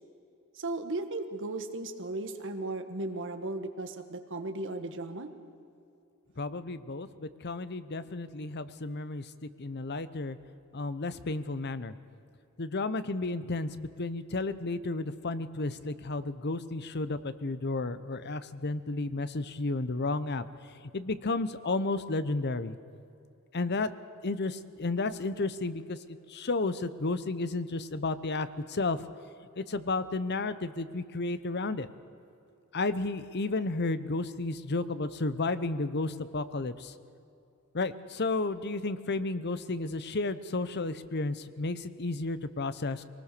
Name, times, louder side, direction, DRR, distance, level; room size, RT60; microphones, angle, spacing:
voice 1, 0.5-5.3, right 2 dB, 55° right, 7 dB, 1.5 m, -36 dB
voice 2, 6.4-10.4 10.7-11.9 12.6-20.4 20.9-22.8 23.5-23.9 24.2-26.0 26.3-29.0 29.6-31.9 32.7-36.9 37.7-43.0, left 3 dB, 50° left, 14 dB, 0.8 m, -32 dB
23.5 x 19.5 x 6.8 m, 2.7 s
head